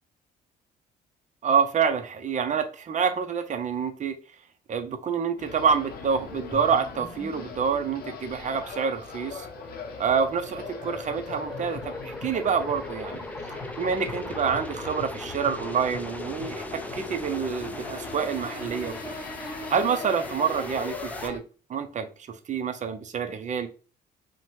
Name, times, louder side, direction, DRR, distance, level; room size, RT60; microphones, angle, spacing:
voice 1, 1.4-4.2 4.7-9.5 10.0-13.2 13.8-19.1 19.7-21.4 21.7-23.7, right 6 dB, 40° right, 8 dB, 0.6 m, -27 dB
sound 1, 5.4-21.4, left 5 dB, 55° left, 0.7 m, -40 dB
sound 2, 6.5-21.3, left 1 dB, 10° left, 0.5 m, -39 dB
2.7 x 2.1 x 3.0 m, 0.36 s
supercardioid pair, 65°, 19 cm